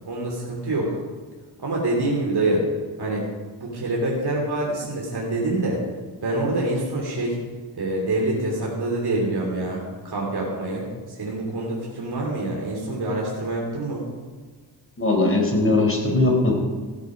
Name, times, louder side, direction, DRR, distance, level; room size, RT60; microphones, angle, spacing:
voice 1, 0.1-1.0 1.6-2.7 3.0-3.3 3.6-5.8 6.2-7.4 7.7-14.1, right 2 dB, 60° right, -3 dB, 3.0 m, -26 dB
voice 2, 15.0-16.5, left 2 dB, 30° left, 1 dB, 4.1 m, -19 dB
16.5 x 9.7 x 5.1 m, 1.4 s
cardioid pair, 75°, 43 cm